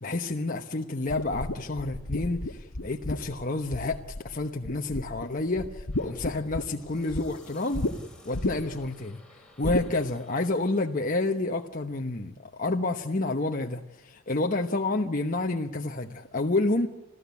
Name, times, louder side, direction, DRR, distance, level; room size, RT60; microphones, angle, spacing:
voice 1, 0.0-7.9 8.2-9.2 9.6-16.9, left 2 dB, 40° left, 1.1 m, -29 dB
sound 1, 1.1-4.3 4.6-5.3 5.6-7.3 7.7-7.9 8.3-8.8 9.6-9.9, left 2 dB, 90° left, 1.3 m, -32 dB
sound 2, 5.9-11.0, left 2 dB, 5° left, 4.5 m, -55 dB
26.5 x 15.0 x 8.3 m
head